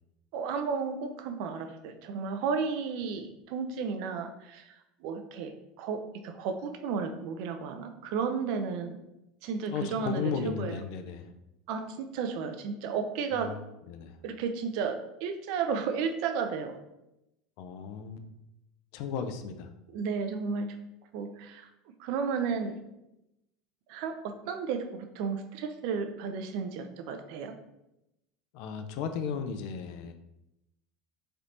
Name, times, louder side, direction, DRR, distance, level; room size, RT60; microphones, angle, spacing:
voice 1, 0.3-9.0 9.4-10.8 11.7-13.6 14.2-16.8 19.9-20.8 21.1-21.7 22.0-22.8 23.9-27.5, right 5 dB, 60° right, 7 dB, 0.4 m, -33 dB
voice 2, 9.7-11.3 13.3-13.6 13.9-14.2 17.6-18.3 18.9-19.7 28.5-30.1, left 6 dB, 60° left, 8 dB, 0.3 m, -35 dB
3.3 x 2.8 x 2.6 m, 0.90 s
figure-of-eight pair, 75°, 0 cm